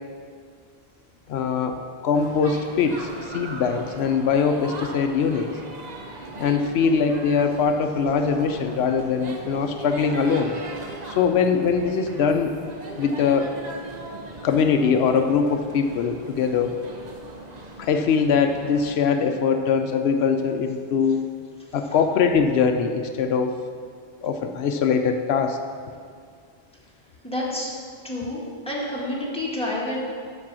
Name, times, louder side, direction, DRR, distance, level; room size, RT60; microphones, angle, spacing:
voice 1, 1.3-5.5 6.4-10.5 11.0-12.5 13.0-13.5 14.4-16.7 17.8-21.3 21.7-23.6 24.2-25.6, left 6 dB, 80° left, 6 dB, 0.8 m, -22 dB
sound 1, 2.1-18.9, right 2 dB, 45° right, 0.9 m, -39 dB
voice 2, 21.6-22.0 27.2-27.7 28.0-30.2, left 1 dB, 5° left, -6 dB, 1.7 m, -29 dB
7.4 x 6.4 x 6.1 m, 2.1 s
omnidirectional pair, 1.1 m